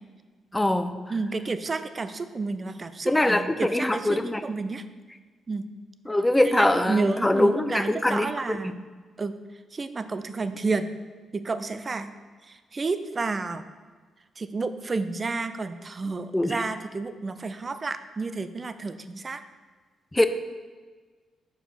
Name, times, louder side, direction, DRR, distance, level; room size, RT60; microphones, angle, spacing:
voice 1, 0.5-0.9 3.1-4.4 6.1-8.3 16.3-16.6 20.1-20.3, left 1 dB, 15° left, 10 dB, 0.6 m, -22 dB
voice 2, 1.1-4.8 5.5-5.7 6.4-8.8 9.2-9.3 9.7-10.9 11.3-13.7 14.4-19.4, right 3 dB, 40° right, 11 dB, 0.5 m, -31 dB
5.2 x 5.0 x 5.8 m, 1.4 s
hypercardioid pair, 45°, 0 cm